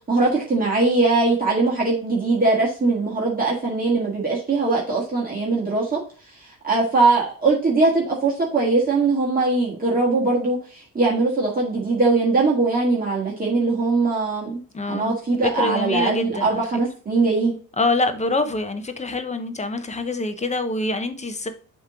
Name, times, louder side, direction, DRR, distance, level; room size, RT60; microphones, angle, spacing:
voice 1, 0.1-6.0 6.6-14.6 14.9-17.5, right 3 dB, 25° right, -5 dB, 1.7 m, -21 dB
voice 2, 14.7-16.6 17.8-21.5, left 2 dB, 20° left, 8 dB, 0.8 m, -25 dB
7.1 x 3.1 x 4.9 m, 0.40 s
cardioid pair, 125°, 35 cm